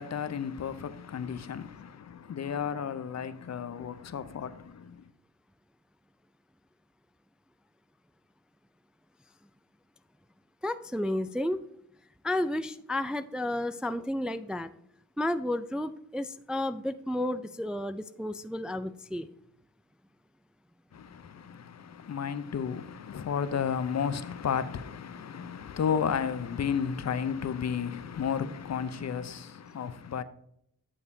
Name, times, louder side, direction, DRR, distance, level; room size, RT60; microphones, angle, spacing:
voice 1, 0.0-5.0 20.9-30.2, left 7 dB, 45° left, 0.7 m, -33 dB
voice 2, 10.6-11.6 12.2-14.7 15.2-19.3 25.4-25.5, left 1 dB, ahead, 0.4 m, -32 dB
9.8 x 6.7 x 2.7 m
supercardioid pair, 45°, 37 cm